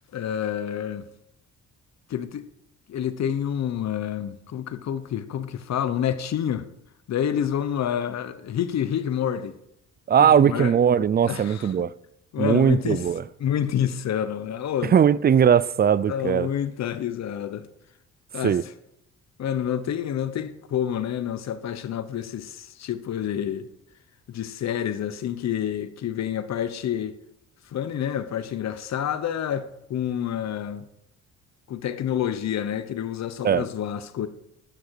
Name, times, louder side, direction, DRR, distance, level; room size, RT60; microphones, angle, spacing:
voice 1, 0.1-1.1 2.1-2.4 2.9-6.6 7.1-9.6 10.2-10.7 11.3-11.7 12.3-13.0 13.4-15.0 16.1-17.7 18.3-18.6 19.4-23.7 24.3-27.1 27.7-30.9 31.7-34.3, left 9 dB, 60° left, 1.1 m, -28 dB
voice 2, 10.1-11.9 12.4-13.2 14.8-16.5 18.4-18.6 33.4-33.6, right 8 dB, 30° right, 0.5 m, -19 dB
12.0 x 9.0 x 4.8 m
cardioid pair, 90°, 30 cm